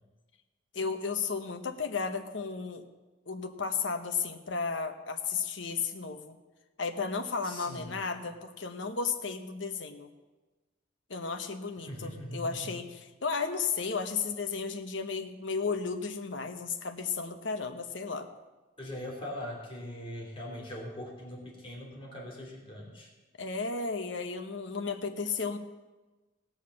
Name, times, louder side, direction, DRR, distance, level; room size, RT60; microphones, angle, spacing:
voice 1, 0.7-2.8 3.3-6.4 6.8-10.1 11.1-18.3 23.4-25.6, left 5 dB, 80° left, 7 dB, 1.0 m, -34 dB
voice 2, 7.4-8.0 11.9-12.8 18.8-23.1, left 1 dB, 30° left, -2 dB, 3.1 m, -41 dB
18.0 x 6.6 x 6.3 m, 1.2 s
head